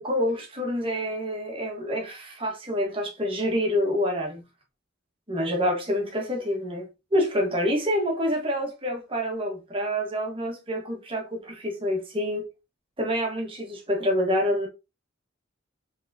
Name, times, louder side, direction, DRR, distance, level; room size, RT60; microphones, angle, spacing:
voice 1, 0.0-4.4 5.3-12.5 13.0-14.7, equal, 25° right, 1.3 m, -27 dB
4.6 x 3.6 x 2.7 m
head